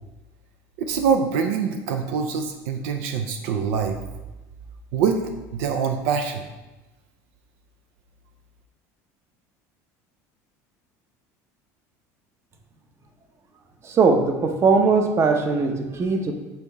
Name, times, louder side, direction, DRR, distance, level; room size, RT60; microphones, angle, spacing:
voice 1, 0.8-4.0 4.9-5.2 5.5-6.5, right 6 dB, 80° right, 5 dB, 0.5 m, -24 dB
voice 2, 13.8-16.3, right 4 dB, 35° right, 4 dB, 0.8 m, -20 dB
6.8 x 4.1 x 3.4 m, 1.1 s
supercardioid pair, 115°, 8 cm